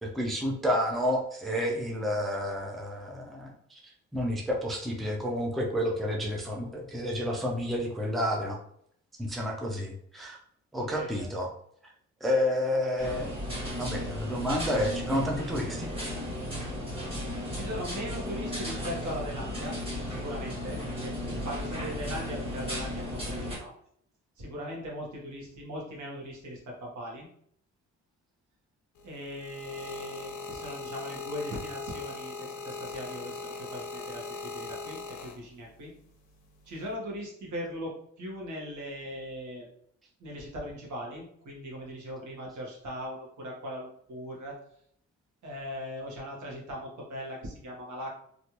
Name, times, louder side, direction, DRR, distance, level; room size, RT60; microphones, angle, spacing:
voice 1, 0.0-8.6 9.2-10.4 10.7-11.5 12.2-13.4 13.8-15.9, left 1 dB, ahead, 0 dB, 0.4 m, -30 dB
voice 2, 10.8-11.3 17.5-23.7 24.4-27.3 29.0-35.9 36.7-39.7 40.2-44.6 45.4-48.1, equal, 70° right, -2 dB, 1.3 m, -39 dB
sound 1, 13.0-23.6, equal, 20° right, 1.4 m, -35 dB
sound 2, 29.0-35.8 36.6-36.9, left 4 dB, 75° left, 0.6 m, -40 dB
3.2 x 2.5 x 2.9 m, 0.67 s
cardioid pair, 135°, 30 cm